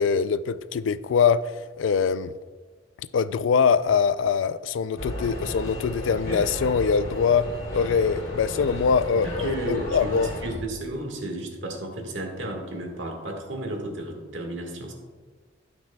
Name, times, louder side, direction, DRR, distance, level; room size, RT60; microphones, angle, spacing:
voice 1, 0.0-2.3 3.1-7.5 7.7-10.3, left 6 dB, 85° left, 16 dB, 0.3 m, -23 dB
sound 1, 5.0-10.5, left 1 dB, 50° left, 2.7 m, -33 dB
voice 2, 9.2-10.1 10.4-14.9, right 1 dB, 75° right, 2 dB, 1.6 m, -33 dB
17.0 x 6.0 x 2.3 m, 1.5 s
head